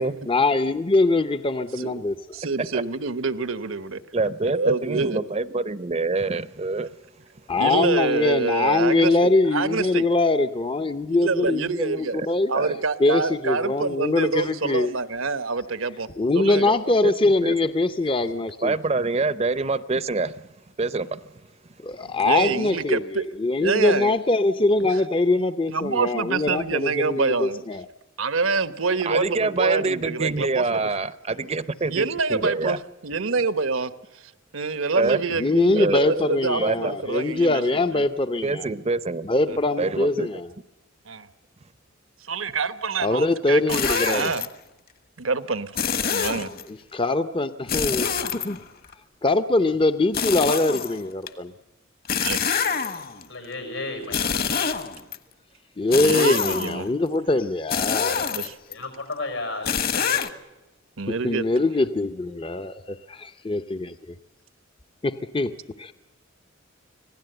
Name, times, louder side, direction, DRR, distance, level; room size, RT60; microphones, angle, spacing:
voice 1, 0.3-2.2 7.5-12.5 13.0-14.9 16.2-18.7 21.8-27.9 35.3-38.7 39.2-40.5 43.0-44.3 46.7-48.6 49.2-51.5 55.8-58.2 61.2-63.0 63.5-63.8 65.0-65.5 65.8-65.9, left 2 dB, 25° left, 0.7 m, -23 dB
voice 2, 2.3-4.0 4.4-5.2 7.6-10.1 11.1-12.1 12.5-16.1 16.3-16.7 22.0-23.2 23.6-24.1 25.7-27.6 28.2-30.8 31.9-32.8 33.0-37.6 37.9-38.0 41.1-41.3 42.3-44.5 45.2-45.7 46.1-46.5 52.2-52.5 55.9-56.9 58.3-58.6 61.0-61.6, right 4 dB, 80° right, 1.1 m, -26 dB
voice 3, 4.1-7.0 7.7-7.9 12.1-12.3 12.5-12.8 17.0-17.1 17.4-17.5 18.6-20.4 20.8-21.2 29.1-32.8 35.0-35.2 35.7-36.2 36.6-36.9 38.4-40.3, right 3 dB, 30° right, 0.7 m, -26 dB
sound 1, 43.7-44.5 45.8-46.6 47.7-48.9 50.1-51.3 52.1-53.2 54.0-55.2 55.9-56.9 57.7-58.7 59.6-60.3, left 6 dB, 50° left, 1.4 m, -26 dB
voice 4, 53.3-54.4 58.7-60.2, left 2 dB, 85° left, 6.5 m, -33 dB
25.5 x 17.0 x 7.9 m
head